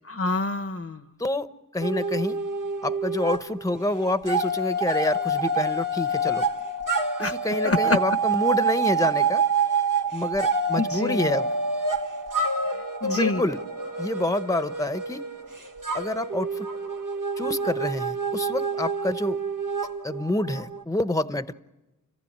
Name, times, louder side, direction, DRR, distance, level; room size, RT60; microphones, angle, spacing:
voice 1, 0.1-1.0 7.2-7.4 7.6-8.2 10.8-11.3 13.0-13.4, left 3 dB, 45° left, 10 dB, 0.9 m, -26 dB
voice 2, 1.7-2.4 2.8-6.4 7.2-9.4 10.1-11.5 13.0-13.6 14.0-15.2 15.9-16.7 17.4-19.4 20.0-21.5, left 2 dB, 10° left, 11 dB, 0.9 m, -27 dB
sound 1, 1.8-3.4 3.7-20.8, right 3 dB, 80° right, 2.0 m, -27 dB
30.0 x 15.0 x 8.7 m, 1.0 s
wide cardioid pair, 40°, 32 cm